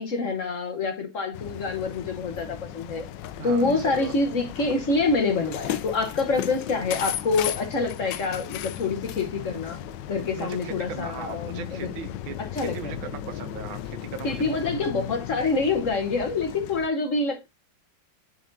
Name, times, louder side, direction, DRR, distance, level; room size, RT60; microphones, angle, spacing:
voice 1, 0.0-3.1 3.4-9.8 10.1-11.9 12.4-12.9 14.2-17.5, left 3 dB, 50° left, 1.2 m, -26 dB
sound 1, 1.3-16.9, left 11 dB, 75° left, 1.2 m, -36 dB
voice 2, 3.4-4.1 10.4-12.4 12.7-14.9, right 8 dB, 90° right, 1.6 m, -38 dB
10.5 x 4.6 x 2.6 m
omnidirectional pair, 2.1 m